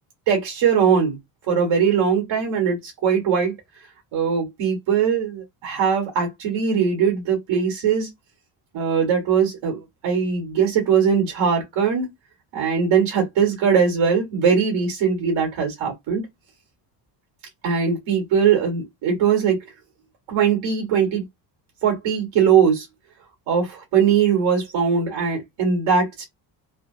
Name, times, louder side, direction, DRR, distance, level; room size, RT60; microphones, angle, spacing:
voice 1, 0.3-1.2 1.5-3.5 4.1-8.1 8.7-12.1 12.5-16.3 17.6-19.6 20.3-21.2 21.8-22.9 23.5-26.2, right 7 dB, 75° right, 1.8 m, -20 dB
3.3 x 2.2 x 2.8 m
cardioid pair, 90°, 47 cm